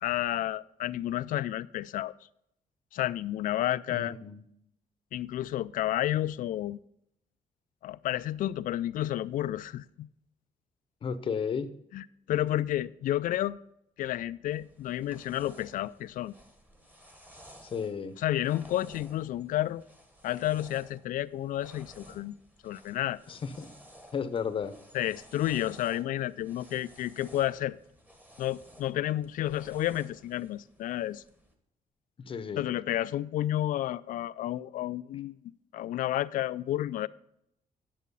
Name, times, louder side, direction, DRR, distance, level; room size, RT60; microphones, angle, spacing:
voice 1, 0.0-2.1 2.9-4.1 5.1-6.8 7.8-10.1 11.9-13.6 14.0-16.3 18.2-19.8 20.2-22.3 22.6-23.2 24.9-27.8 28.4-31.2 32.6-35.4 35.7-37.1, left 13 dB, 75° left, 0.4 m, -31 dB
voice 2, 3.9-4.4 11.0-11.7 17.6-18.2 23.3-23.7 24.1-24.8 32.2-32.7, left 6 dB, 40° left, 0.7 m, -33 dB
sound 1, 14.5-31.5, equal, 10° right, 1.3 m, -55 dB
10.5 x 7.3 x 5.4 m
cardioid pair, 160°, 14 cm